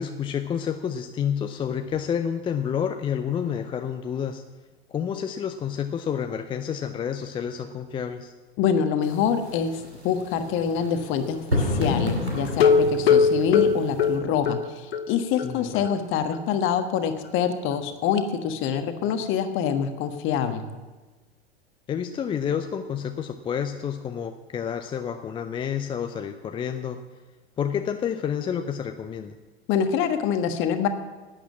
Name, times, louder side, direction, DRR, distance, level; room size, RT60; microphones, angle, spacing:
voice 1, 0.0-4.4 4.9-8.3 15.4-15.9 21.9-27.0 27.6-29.4, left 8 dB, 15° left, 8 dB, 0.5 m, -29 dB
voice 2, 8.6-20.7 29.7-30.9, left 8 dB, 40° left, 8 dB, 1.4 m, -25 dB
sound 1, 9.0-14.2, left 1 dB, 90° right, 2.4 m, -30 dB
sound 2, 12.5-15.1 15.4-15.5 15.9-16.0 16.3-16.4, left 5 dB, 70° left, 1.0 m, -20 dB
11.5 x 8.8 x 7.4 m, 1.2 s
figure-of-eight pair, 85°, 32 cm